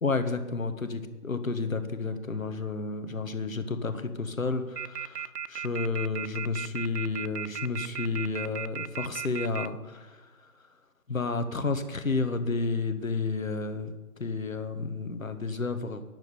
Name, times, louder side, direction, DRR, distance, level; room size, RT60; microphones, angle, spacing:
voice 1, 0.0-10.5 11.1-13.9 14.2-16.0, left 4 dB, 60° left, 9 dB, 1.4 m, -31 dB
sound 1, 4.8-9.7, right 9 dB, 90° right, 0.7 m, -35 dB
9.1 x 8.7 x 9.5 m, 1.2 s
figure-of-eight pair, 170°, 47 cm